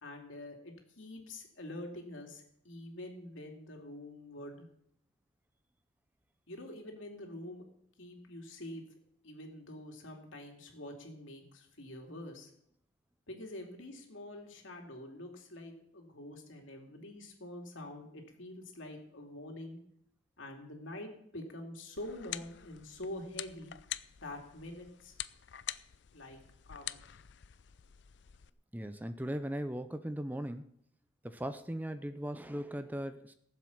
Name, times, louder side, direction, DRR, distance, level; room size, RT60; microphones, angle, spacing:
voice 1, 0.0-4.7 6.5-7.6 8.0-8.8 9.2-12.5 13.3-19.8 20.4-23.7 24.2-25.1 26.1-26.4 26.7-27.1, left 1 dB, 75° left, 2 dB, 2.7 m, -46 dB
sound 1, 22.0-28.5, left 13 dB, 60° left, 0.5 m, -46 dB
voice 2, 28.7-30.7 31.2-33.3, equal, 10° right, 10 dB, 0.5 m, -38 dB
15.0 x 7.6 x 7.2 m, 0.71 s
head